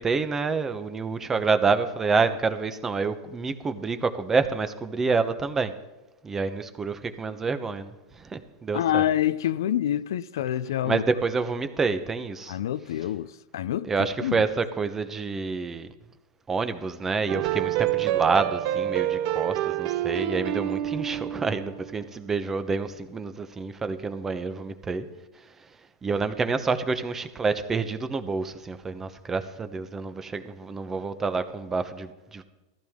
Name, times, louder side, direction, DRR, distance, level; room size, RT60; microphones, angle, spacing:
voice 1, 0.0-5.7 6.2-9.0 10.8-12.6 13.8-15.9 16.5-25.0 25.6-25.7 26.0-32.4, right 4 dB, 15° right, 0.9 m, -28 dB
voice 2, 8.7-11.0 12.5-13.9 14.2-14.5, left 11 dB, 90° left, 0.5 m, -27 dB
sound 1, 17.3-21.9, right 13 dB, 55° right, 0.6 m, -27 dB
15.0 x 14.0 x 3.7 m
supercardioid pair, 135°, 2 cm